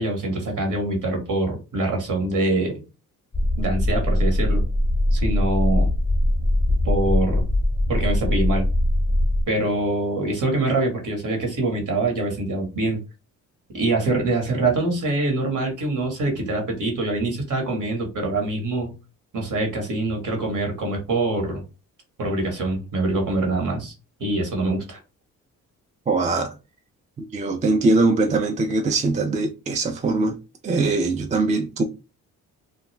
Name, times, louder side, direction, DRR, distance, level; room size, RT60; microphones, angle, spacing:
voice 1, 0.0-2.8 3.6-4.6 5.1-5.9 6.8-7.5 7.9-8.7 9.5-13.0 13.7-18.9 19.3-21.6 22.2-23.9 24.2-25.0, right 2 dB, 55° right, 1.4 m, -24 dB
sound 1, 3.3-9.4, left 1 dB, 10° left, 0.7 m, -21 dB
voice 2, 26.1-26.6 27.2-30.4 30.6-31.8, right 3 dB, 20° right, 0.4 m, -22 dB
2.4 x 2.1 x 3.2 m
supercardioid pair, 65°, 37 cm